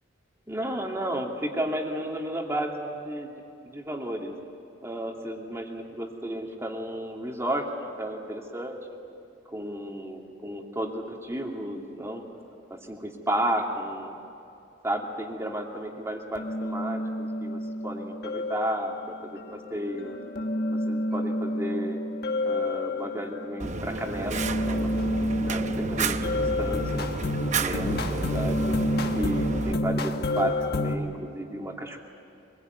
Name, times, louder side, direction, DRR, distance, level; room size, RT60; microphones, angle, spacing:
voice 1, 0.5-3.3 3.6-4.3 4.8-8.8 9.5-12.2 12.7-14.2 14.8-18.9 19.2-20.2 20.7-22.0 22.4-24.9 25.4-27.1 27.5-28.8 29.1-32.0, right 1 dB, 15° right, 1 dB, 2.5 m, -33 dB
sound 1, 16.4-31.0, left 1 dB, 60° left, 1.4 m, -29 dB
Fire, 23.6-29.7, right 4 dB, 40° right, 0.8 m, -31 dB
25.0 x 21.5 x 9.5 m, 2.6 s
head